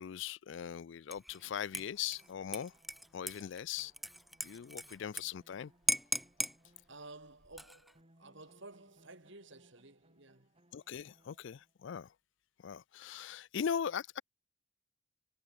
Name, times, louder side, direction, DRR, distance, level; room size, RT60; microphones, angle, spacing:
voice 1, 0.0-2.7 3.1-3.9 4.4-5.7 10.7-12.1 12.6-14.2, left 8 dB, 55° left, 0.3 m, -40 dB
Dishes pots and pans / Liquid, 1.1-1.4 1.7-5.2 5.5-5.6 5.9-6.6 7.4-7.9, equal, ahead, 0.6 m, -37 dB
sound 1, 1.3-7.7 7.9-11.9, right 1 dB, 25° right, 3.2 m, -69 dB
voice 2, 6.9-10.6, right 2 dB, 55° right, 3.7 m, -53 dB
head